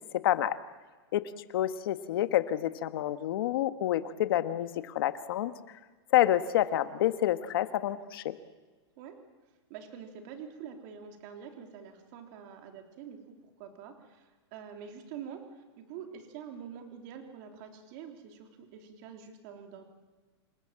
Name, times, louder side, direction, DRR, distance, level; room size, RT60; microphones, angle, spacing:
voice 1, 0.1-0.6 1.1-5.5 6.1-8.4, left 13 dB, 55° left, 11 dB, 1.4 m, -28 dB
voice 2, 9.7-19.8, right 7 dB, 40° right, 4 dB, 3.4 m, -46 dB
27.0 x 20.5 x 7.6 m, 1.3 s
supercardioid pair, 160°, 14 cm